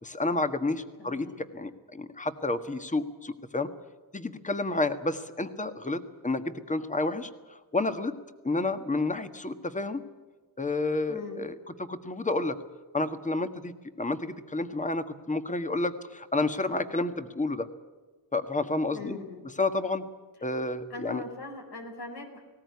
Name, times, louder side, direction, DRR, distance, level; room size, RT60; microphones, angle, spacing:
voice 1, 0.0-3.7 4.1-8.2 8.4-10.0 10.6-12.6 12.9-17.7 18.3-19.2 19.6-20.0 20.4-21.2, left 2 dB, 20° left, 10 dB, 1.6 m, -30 dB
voice 2, 1.0-1.4 11.1-11.4 18.9-19.4 20.9-22.4, left 3 dB, 75° left, 3 dB, 4.7 m, -40 dB
19.0 x 18.0 x 9.6 m, 1.4 s
cardioid pair, 90°, 39 cm